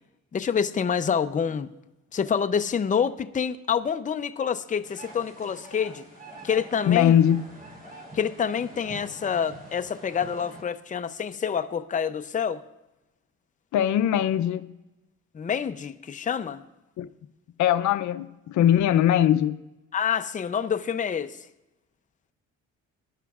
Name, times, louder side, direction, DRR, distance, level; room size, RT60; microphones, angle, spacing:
voice 1, 0.3-1.7 2.1-6.0 6.4-7.1 8.1-12.6 15.3-16.6 19.9-21.4, left 7 dB, 25° left, 0.6 m, -27 dB
sound 1, 4.8-10.6, right 1 dB, 30° right, 3.7 m, -45 dB
voice 2, 6.9-7.4 13.7-14.7 17.0-17.1 17.6-19.6, left 10 dB, 70° left, 0.6 m, -21 dB
21.0 x 11.0 x 2.4 m
cardioid pair, 90°, 30 cm